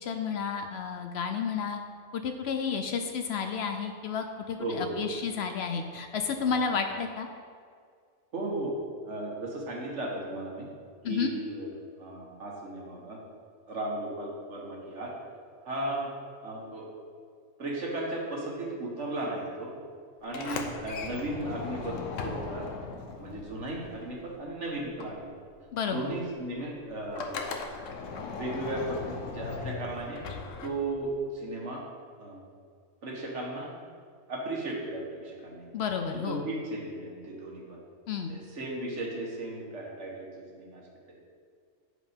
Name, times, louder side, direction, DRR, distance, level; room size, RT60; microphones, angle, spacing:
voice 1, 0.0-1.8 2.1-7.3 11.0-11.3 25.7-26.0 35.7-36.5 38.1-38.4, left 6 dB, 65° left, 5 dB, 0.7 m, -31 dB
voice 2, 4.6-5.0 6.4-6.6 8.3-8.7 9.0-10.7 11.1-11.7 12.0-13.2 13.7-15.1 15.6-16.1 16.4-16.9 17.6-19.7 20.2-22.7 23.1-25.3 25.9-27.4 28.3-30.2 30.6-31.8 32.2-32.4 33.0-33.7 34.3-35.7 36.0-37.8 38.3-40.3 40.5-40.8 41.1-41.2, right 2 dB, 70° right, -2 dB, 1.6 m, -35 dB
Sliding door, 20.2-24.5 24.8-31.2, left 5 dB, 85° left, 1.1 m, -39 dB
7.5 x 5.0 x 5.1 m, 2.1 s
omnidirectional pair, 1.3 m